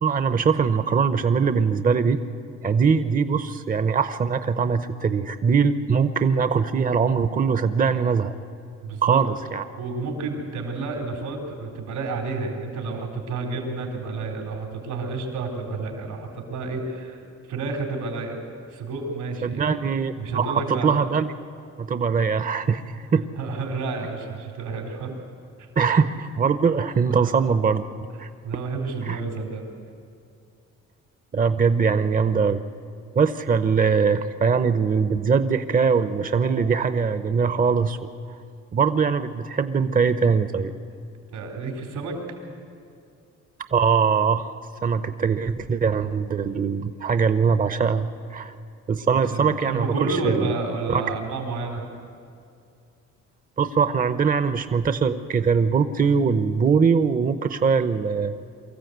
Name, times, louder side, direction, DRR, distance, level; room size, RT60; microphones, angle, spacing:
voice 1, 0.0-2.2 2.6-8.3 9.0-9.6 19.4-21.3 21.8-23.3 25.8-27.8 28.2-28.3 29.0-29.2 31.3-32.6 33.1-38.0 38.7-40.7 43.7-44.5 44.8-48.5 48.9-50.5 50.9-51.0 53.6-58.3, right 5 dB, 30° right, 11 dB, 0.7 m, -22 dB
voice 2, 8.8-9.2 9.8-17.2 17.5-18.4 18.7-19.7 20.2-20.9 23.4-25.1 27.1-27.3 28.4-29.6 41.3-42.2 49.3-51.8, right 3 dB, 90° right, 2 dB, 4.0 m, -30 dB
23.5 x 14.0 x 8.1 m, 2.4 s
cardioid pair, 90°, 30 cm